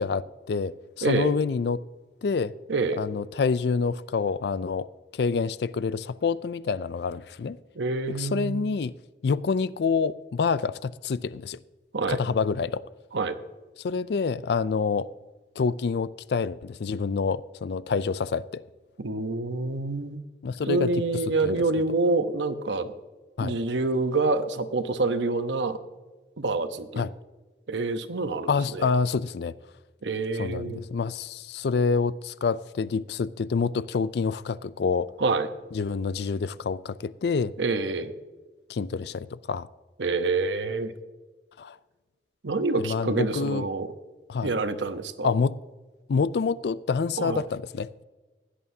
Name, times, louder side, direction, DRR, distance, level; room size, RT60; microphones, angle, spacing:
voice 1, 0.0-1.8 2.2-2.5 3.0-4.9 5.1-7.6 8.2-9.0 9.2-11.6 12.1-12.8 13.8-15.1 15.6-18.6 20.4-20.9 21.4-21.6 23.4-23.5 27.0-27.1 28.5-29.5 30.4-35.1 35.7-37.5 38.7-39.7 41.6-41.8 42.8-43.7 44.3-44.5 45.2-45.6 46.1-47.9, left 5 dB, 65° left, 0.4 m, -27 dB
voice 2, 1.0-1.3 2.7-3.0 7.7-8.6 11.9-12.2 13.1-13.4 19.0-20.2 20.7-22.9 23.4-25.8 26.4-27.1 27.7-28.9 30.0-30.8 35.2-35.5 37.6-38.1 40.0-40.9 42.4-43.9 44.4-45.3 47.2-47.4, right 3 dB, 90° right, 0.9 m, -27 dB
16.0 x 11.5 x 2.8 m
head